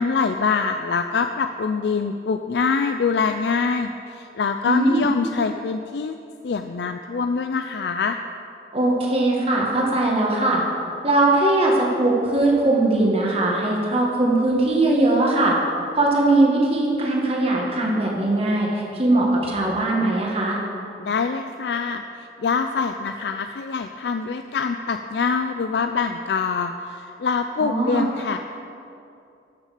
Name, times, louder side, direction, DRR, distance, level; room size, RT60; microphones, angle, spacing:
voice 1, 0.0-6.2 6.4-8.2 21.0-28.4, left 5 dB, 70° left, 7 dB, 0.4 m, -24 dB
voice 2, 4.6-5.1 8.7-10.6 11.0-15.5 15.9-20.6 27.6-28.0, right 2 dB, 35° right, -2 dB, 1.9 m, -20 dB
13.0 x 6.4 x 6.6 m, 2.7 s
head